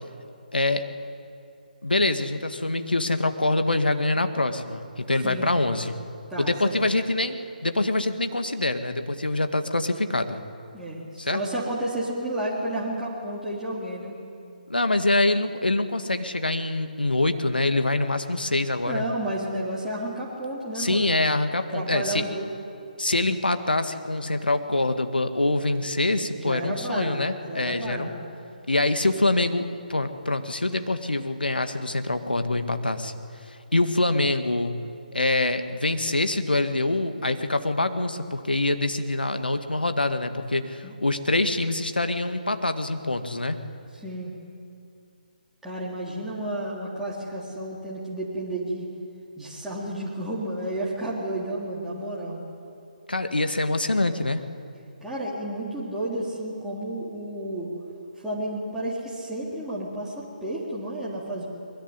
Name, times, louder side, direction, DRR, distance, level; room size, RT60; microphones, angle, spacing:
voice 1, 0.5-0.9 1.8-6.0 6.4-10.4 11.2-11.4 14.7-19.0 20.7-22.3 23.0-28.1 28.7-33.1 33.4-34.8 35.1-43.6 53.1-54.4, left 2 dB, 80° left, 8 dB, 1.9 m, -25 dB
voice 2, 5.2-5.5 6.3-6.8 10.7-14.1 18.8-21.1 21.7-22.5 26.4-28.2 40.8-41.0 43.9-44.3 45.6-48.9 49.4-52.4 55.0-57.7 58.2-61.4, right 1 dB, 5° right, -8 dB, 3.6 m, -31 dB
22.0 x 21.5 x 9.9 m, 2.5 s
figure-of-eight pair, 145°, 5 cm